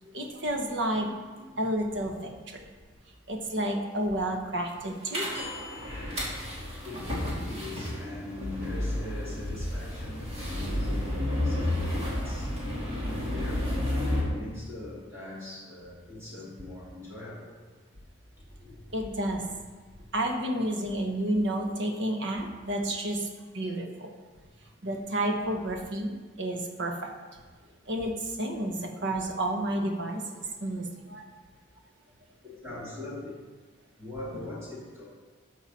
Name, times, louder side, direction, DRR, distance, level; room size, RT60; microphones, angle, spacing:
voice 1, 0.1-2.6 3.3-5.5 18.9-19.4 20.1-23.3 23.5-24.1 24.8-27.1 27.9-31.2, right 1 dB, 60° right, 3 dB, 1.2 m, -31 dB
sound 1, 5.1-14.2, left 1 dB, 30° right, 2.6 m, -31 dB
voice 2, 5.9-17.6 18.4-19.0 19.9-20.0 24.5-24.6 27.6-27.7 32.4-33.3 34.0-35.0, left 2 dB, 15° right, -7 dB, 2.8 m, -42 dB
12.5 x 6.0 x 4.2 m, 1.4 s
head